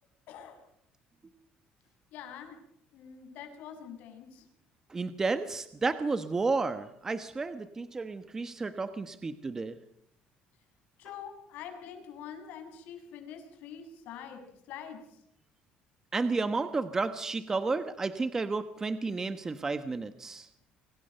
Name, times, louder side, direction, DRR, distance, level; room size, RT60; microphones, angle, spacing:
voice 1, 0.3-0.6 2.1-2.6 2.9-4.5 11.0-15.2, left 8 dB, 70° left, 6 dB, 7.7 m, -45 dB
voice 2, 4.9-9.8 16.1-20.5, right 3 dB, 15° right, 10 dB, 1.2 m, -32 dB
29.0 x 26.0 x 6.8 m, 0.73 s
cardioid pair, 160°, 3 cm